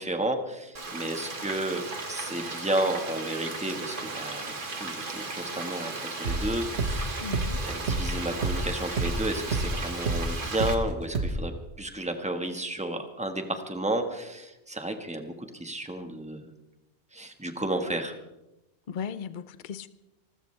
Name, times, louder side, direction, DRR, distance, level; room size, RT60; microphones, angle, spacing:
voice 1, 0.0-5.9 6.2-7.1 7.6-11.5 11.8-16.5 17.1-18.1, right 1 dB, 5° right, 1.5 m, -32 dB
Frying (food), 0.7-10.7, right 3 dB, 45° right, 1.7 m, -36 dB
sound 1, 6.2-10.8 11.1-11.4, right 2 dB, 65° right, 1.6 m, -29 dB
voice 2, 7.2-7.6 18.9-19.9, left 7 dB, 50° left, 0.8 m, -36 dB
28.5 x 13.5 x 3.4 m
omnidirectional pair, 1.2 m